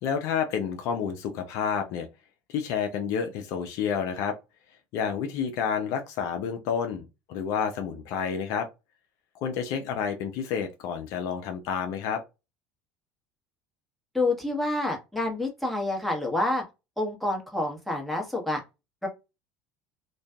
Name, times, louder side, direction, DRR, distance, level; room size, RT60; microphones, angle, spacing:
voice 1, 0.0-2.1 2.5-4.4 4.9-8.7 9.4-12.2, left 7 dB, 65° left, 0.5 m, -29 dB
voice 2, 14.1-16.6 17.0-18.6 19.0-19.1, left 2 dB, ahead, 1.0 m, -28 dB
2.5 x 2.3 x 2.2 m
hypercardioid pair, 80°, 6 cm